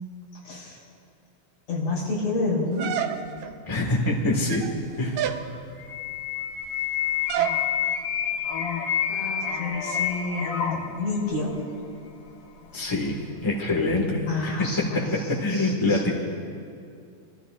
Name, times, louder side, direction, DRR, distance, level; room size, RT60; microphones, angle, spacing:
voice 1, 0.4-0.8 1.7-2.9 9.1-11.5 14.3-15.0 15.5-16.0, left 2 dB, 85° left, -6 dB, 5.6 m, -29 dB
sound 1, 2.8-3.5 4.4-4.8 5.2-5.5 7.3-7.6, right 11 dB, 75° right, 1.9 m, -28 dB
voice 2, 3.7-4.6 5.0-5.2 12.7-13.2 13.4-14.5 15.4-16.1, left 2 dB, 15° left, -1 dB, 0.9 m, -25 dB
sound 2, 5.0-14.1 14.5-14.8, left 8 dB, 70° left, 1.1 m, -29 dB
24.5 x 14.0 x 2.5 m, 2.4 s
omnidirectional pair, 3.5 m